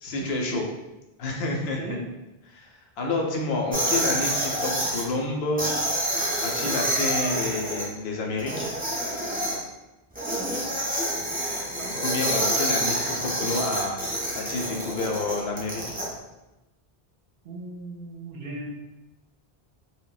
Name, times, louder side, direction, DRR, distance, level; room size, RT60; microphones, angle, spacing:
voice 1, 0.0-0.6 1.2-2.0 2.4-6.1 6.4-8.7 12.0-15.8, left 2 dB, 75° left, 1 dB, 0.8 m, -29 dB
sound 1, 3.7-5.0 5.6-7.8 8.4-9.6 10.2-16.1, right 1 dB, 15° right, 0.3 m, -27 dB
voice 2, 17.4-18.7, right 2 dB, 65° right, -1 dB, 0.7 m, -37 dB
2.2 x 2.1 x 3.7 m, 0.97 s
omnidirectional pair, 1.1 m